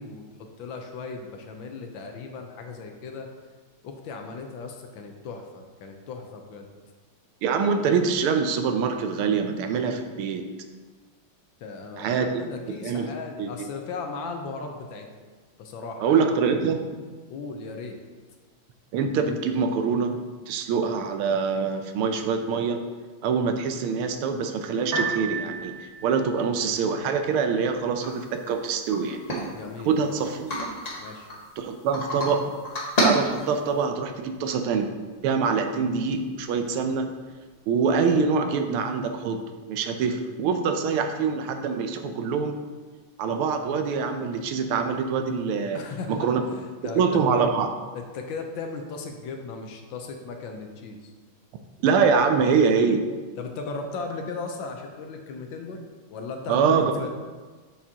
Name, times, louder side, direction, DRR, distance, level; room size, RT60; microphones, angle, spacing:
voice 1, 0.0-3.3 3.8-6.7 11.6-15.1 15.6-16.2 17.3-18.0 29.5-30.3 31.0-31.3 45.7-47.2 47.9-51.1 53.4-55.8 56.1-57.1, left 4 dB, 70° left, 4 dB, 1.4 m, -37 dB
voice 2, 7.4-10.4 12.0-12.5 12.8-13.1 13.4-13.7 16.0-16.8 18.9-20.1 20.5-22.8 23.2-29.2 29.8-30.5 31.6-32.5 33.0-34.9 35.2-37.1 37.7-39.4 39.7-42.6 43.2-45.8 46.1-46.4 46.9-47.7 51.8-53.0 56.5-56.9, right 5 dB, 90° right, 6 dB, 1.6 m, -24 dB
Piano, 24.8-37.8, right 4 dB, 65° right, 2.4 m, -41 dB
sound 1, 28.0-28.1 28.5-28.6 28.9-30.0 30.5-31.4 31.9-32.3 32.6-33.8, equal, 25° left, 0.8 m, -27 dB
7.3 x 6.7 x 2.9 m, 1.4 s
omnidirectional pair, 2.3 m